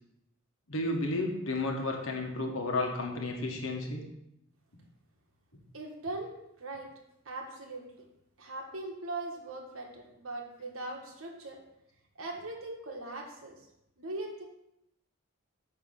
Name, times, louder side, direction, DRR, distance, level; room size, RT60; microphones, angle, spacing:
voice 1, 0.7-4.0, left 2 dB, 65° left, 2 dB, 1.4 m, -32 dB
voice 2, 5.7-6.9 7.2-7.8 8.4-11.6 12.2-13.5 14.0-14.5, right 2 dB, 70° right, 1 dB, 1.5 m, -40 dB
9.1 x 3.2 x 6.4 m, 0.83 s
head